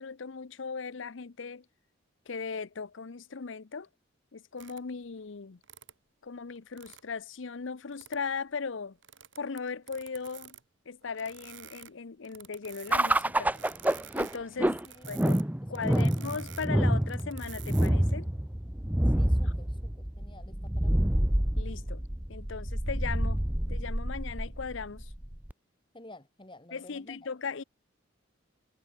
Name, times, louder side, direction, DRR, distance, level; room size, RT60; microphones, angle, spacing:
voice 1, 0.0-1.6 2.3-3.9 4.3-5.6 6.2-9.0 9.4-10.6 10.9-13.5 14.2-14.8 15.1-15.4 15.7-18.3 19.4-19.5 21.6-22.0 22.3-23.4 23.7-25.1 26.7-27.6, left 5 dB, 65° left, 0.7 m, -38 dB
sound 1, 4.6-4.8 5.6-5.9 6.6-7.0 7.9-8.2 9.0-10.6 11.0-11.9 12.2-15.4 15.7-18.1, right 10 dB, 65° right, 7.9 m, -49 dB
sound 2, 12.9-25.5, right 1 dB, 10° right, 0.7 m, -28 dB
voice 2, 14.8-16.1 19.2-19.8 20.2-21.1 25.9-27.2, left 2 dB, 25° left, 2.3 m, -51 dB
head